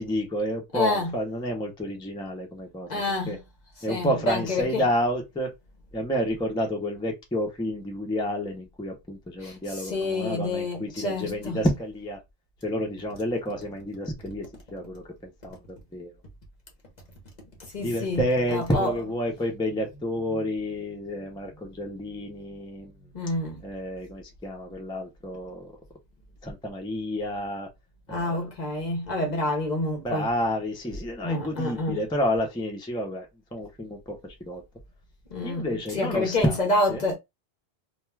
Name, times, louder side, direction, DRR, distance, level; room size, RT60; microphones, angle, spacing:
voice 1, 0.0-3.4 3.8-5.5 5.9-12.2 12.6-14.5 14.7-16.1 17.8-22.9 23.6-25.7 26.4-27.7 28.1-28.5 30.0-33.3 33.5-34.6 35.4-37.0, equal, 5° left, 0.4 m, -30 dB
voice 2, 0.7-1.1 2.9-3.4 3.9-4.8 9.4-11.6 17.6-18.9 23.1-23.6 28.1-30.3 31.2-32.0 35.3-37.1, left 2 dB, 45° left, 0.7 m, -28 dB
2.3 x 2.3 x 3.1 m
omnidirectional pair, 1.2 m